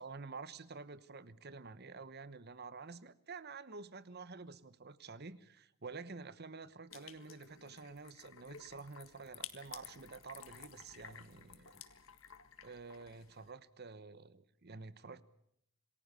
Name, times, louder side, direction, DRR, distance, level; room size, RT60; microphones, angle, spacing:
voice 1, 0.0-11.8 12.6-15.2, right 4 dB, 50° right, 15 dB, 1.1 m, -49 dB
sound 1, 6.9-13.5, left 9 dB, 65° left, 1.8 m, -53 dB
27.5 x 19.5 x 6.8 m, 0.74 s
head